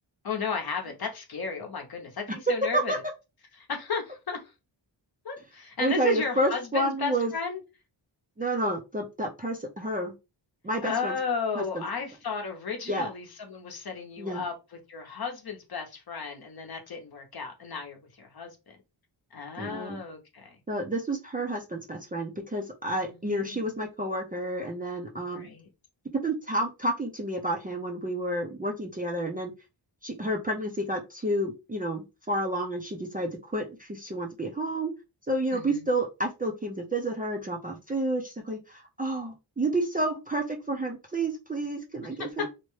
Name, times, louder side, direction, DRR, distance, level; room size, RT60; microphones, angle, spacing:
voice 1, 0.2-3.0 3.5-4.4 5.2-7.6 10.8-18.6 19.3-20.5 23.1-23.7 25.3-25.7 35.5-35.9 42.4-42.5, left 5 dB, 50° left, 0.8 m, -34 dB
voice 2, 5.8-7.3 8.4-10.1 10.6-11.2 11.6-11.8 12.9-13.1 14.2-14.5 19.6-20.0 20.7-25.5 26.2-29.5 30.0-34.9 35.3-42.5, right 1 dB, 20° right, 0.4 m, -30 dB
2.7 x 2.1 x 3.1 m
wide cardioid pair, 115°, 47 cm